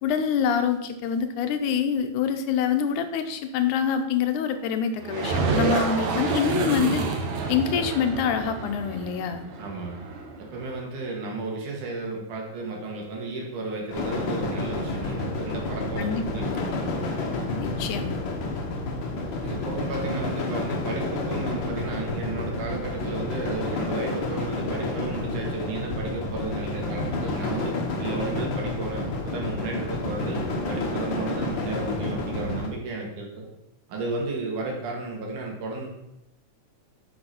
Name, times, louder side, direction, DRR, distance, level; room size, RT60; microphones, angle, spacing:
voice 1, 0.0-7.1 7.5-9.4 16.0-16.7 17.6-18.2, left 7 dB, 90° left, 7 dB, 2.3 m, -26 dB
sound 1, 5.0-10.7, right 3 dB, 70° right, 2.4 m, -28 dB
voice 2, 9.6-10.0 10.4-17.0 19.4-33.5 33.9-35.9, right 3 dB, 85° right, -1 dB, 3.5 m, -33 dB
sound 2, 13.9-32.7, left 2 dB, 50° left, 1.6 m, -30 dB
7.9 x 6.2 x 5.9 m, 0.88 s
omnidirectional pair, 3.5 m